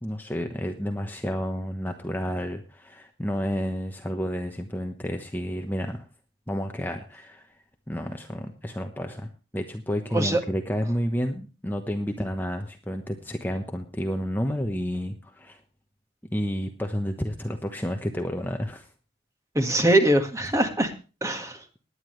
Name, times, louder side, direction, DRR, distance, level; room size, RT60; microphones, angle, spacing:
voice 1, 0.0-6.1 6.5-7.5 7.9-15.6 16.3-18.9, equal, 10° left, 4 dB, 1.1 m, -30 dB
voice 2, 19.6-20.9 21.2-21.6, right 1 dB, 15° right, 6 dB, 1.8 m, -22 dB
20.0 x 9.9 x 3.3 m, 0.33 s
head